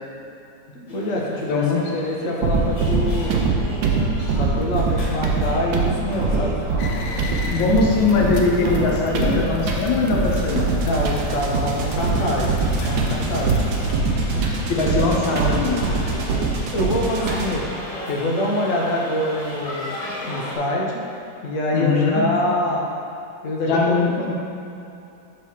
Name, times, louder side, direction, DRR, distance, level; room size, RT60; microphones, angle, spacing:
voice 1, 0.7-3.4 4.4-6.6 10.8-12.5 12.9-13.5 15.8-17.6 18.1-19.9 20.2-21.0 21.4-22.9 23.4-24.3, left 1 dB, 50° left, -2 dB, 1.1 m, -25 dB
sound 1, 0.9-20.6, left 1 dB, 30° left, 0.7 m, -36 dB
voice 2, 1.5-1.8 7.4-10.7 14.7-15.8 21.7-22.2 23.6-24.3, left 4 dB, 85° left, -2 dB, 1.7 m, -21 dB
sound 2, 2.4-17.7, right 4 dB, 85° right, 1.5 m, -23 dB
sound 3, 6.8-13.9, left 3 dB, 70° left, 0.8 m, -31 dB
6.7 x 3.3 x 5.6 m, 2.8 s
omnidirectional pair, 2.0 m